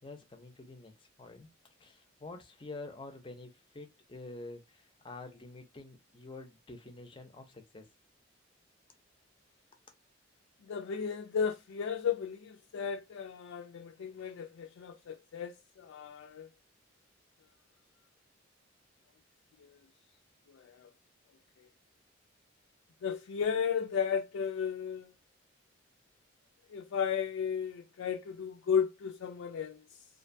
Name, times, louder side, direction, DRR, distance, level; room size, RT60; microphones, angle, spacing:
voice 1, 0.0-1.5 1.8-7.9, left 2 dB, 25° left, 0.5 m, -48 dB
voice 2, 10.6-16.5 19.6-19.8 20.5-20.9 21.6-21.7 23.0-25.1 26.7-30.1, left 7 dB, 80° left, 0.3 m, -34 dB
2.5 x 2.2 x 2.5 m
head